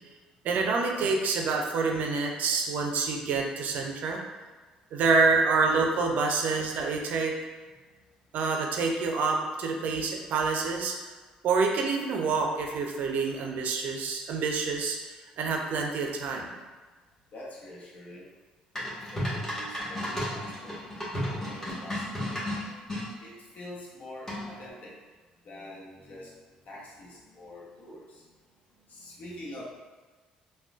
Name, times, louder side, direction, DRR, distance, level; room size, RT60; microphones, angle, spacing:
voice 1, 0.4-4.2 4.9-7.3 8.3-11.0 11.4-16.5, right 4 dB, 60° right, 1 dB, 0.4 m, -27 dB
voice 2, 17.3-18.3 18.8-20.8 21.4-22.4 23.2-25.0 25.4-28.3 28.7-29.8, left 1 dB, 55° left, -4 dB, 0.9 m, -46 dB
sound 1, 18.8-23.1 24.3-24.7, left 1 dB, 15° left, 1.3 m, -33 dB
3.6 x 2.2 x 2.4 m, 1.4 s
hypercardioid pair, 60°, 3 cm